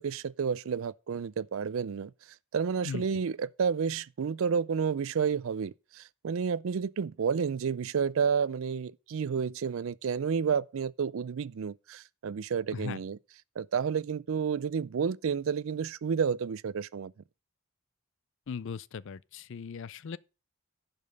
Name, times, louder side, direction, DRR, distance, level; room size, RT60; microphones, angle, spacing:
voice 1, 0.0-2.1 2.5-13.2 13.6-17.1, right 6 dB, 65° right, 0.4 m, -30 dB
voice 2, 18.5-20.2, left 6 dB, 55° left, 0.4 m, -38 dB
10.5 x 5.3 x 6.6 m
head